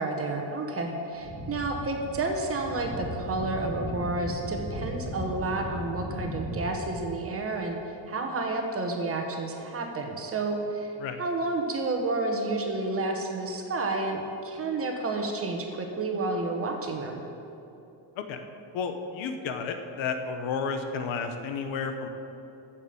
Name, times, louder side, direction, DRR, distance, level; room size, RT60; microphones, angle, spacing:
voice 1, 0.0-10.9 11.2-17.2, right 2 dB, 30° right, 3 dB, 1.2 m, -30 dB
sound 1, 1.2-7.2, equal, 15° left, 2.3 m, -37 dB
voice 2, 18.7-22.1, left 5 dB, 80° left, 7 dB, 1.1 m, -32 dB
14.0 x 7.2 x 5.2 m, 3.0 s
cardioid pair, 165°, 47 cm